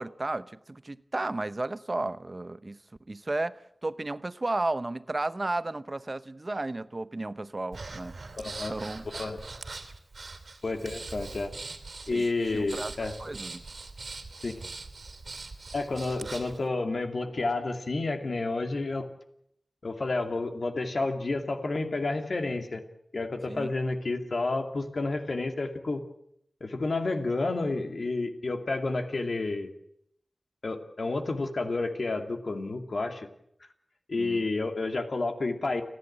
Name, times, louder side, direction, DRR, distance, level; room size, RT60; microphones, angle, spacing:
voice 1, 0.0-2.8 3.1-8.2 8.7-9.0 12.1-12.2 12.5-12.9 13.2-13.6 23.5-23.7 34.2-34.5, right 2 dB, 40° right, 0.8 m, -33 dB
Breathing, 7.7-16.6, right 3 dB, 80° right, 2.5 m, -42 dB
voice 2, 8.4-8.7 9.2-9.4 10.6-11.5 12.1-13.1 14.4-14.5 15.7-19.1 19.8-22.8 23.1-26.0 26.6-29.7 30.6-33.3 34.1-35.8, left 3 dB, 80° left, 2.4 m, -30 dB
29.5 x 11.0 x 8.8 m
wide cardioid pair, 65°, 0 cm